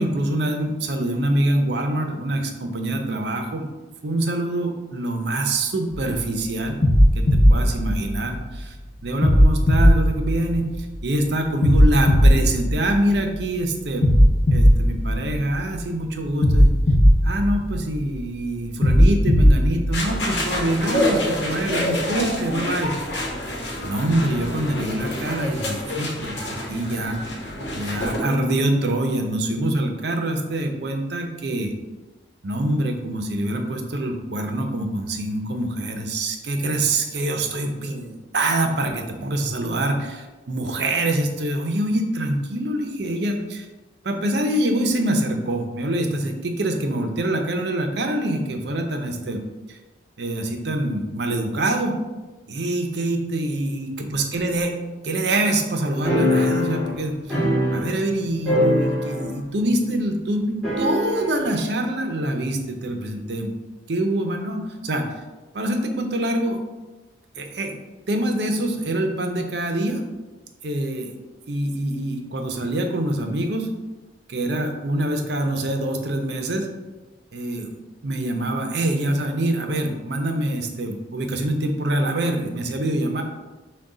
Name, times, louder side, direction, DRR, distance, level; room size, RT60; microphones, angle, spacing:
voice 1, 0.0-3.7 4.0-6.8 7.1-7.2 7.5-8.8 9.0-14.0 14.5-16.7 17.2-22.9 23.8-27.2 27.6-31.7 32.4-43.7 44.0-49.4 49.7-49.8 50.2-52.0 52.5-54.7 55.0-57.4 57.7-63.6 63.9-65.1 65.5-66.6 67.4-67.7 68.1-70.0 70.6-71.1 71.5-73.7 74.3-76.7 77.3-77.8 78.0-83.2, right 1 dB, 65° right, 4 dB, 0.6 m, -25 dB
sound 1, 5.9-6.2 6.8-8.6 9.2-11.0 11.6-13.4 14.0-15.8 16.4-18.2 18.8-20.6, equal, 50° left, 0.6 m, -17 dB
sound 2, 19.9-28.2, left 1 dB, 65° left, 1.1 m, -27 dB
sound 3, 56.0-58.2 58.4-59.5 59.7-59.8 60.6-61.4, left 1 dB, 5° left, 1.3 m, -22 dB
6.0 x 2.3 x 3.8 m, 1.2 s
head